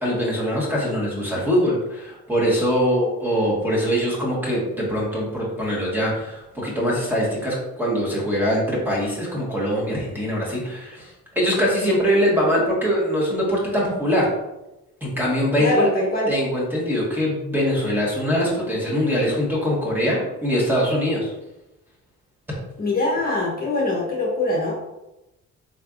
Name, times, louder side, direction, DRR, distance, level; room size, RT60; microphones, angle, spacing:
voice 1, 0.0-14.3 15.0-15.9 16.3-21.3 22.5-22.6, equal, 5° right, -5 dB, 1.4 m, -22 dB
voice 2, 15.6-16.3 22.8-24.7, left 2 dB, 30° left, -3 dB, 0.9 m, -23 dB
4.0 x 3.2 x 2.4 m, 0.96 s
cardioid pair, 90°, 30 cm